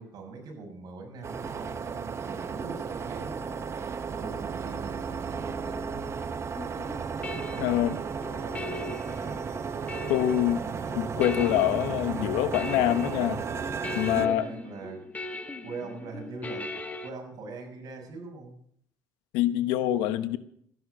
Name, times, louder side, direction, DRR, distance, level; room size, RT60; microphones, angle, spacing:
voice 1, 0.0-3.6 4.1-6.1 7.6-8.1 8.4-8.8 14.0-15.0 15.6-16.7 17.0-18.6, right 4 dB, 55° right, 6.5 m, -42 dB
sound 1, 1.2-14.3, right 6 dB, 35° right, 1.0 m, -34 dB
sound 2, 6.6-17.1, left 2 dB, 20° left, 1.6 m, -39 dB
voice 2, 7.6-8.0 10.1-10.6 10.9-13.4 13.9-14.4 19.3-20.4, left 12 dB, 90° left, 1.0 m, -25 dB
14.0 x 11.5 x 6.6 m
cardioid pair, 95°, 8 cm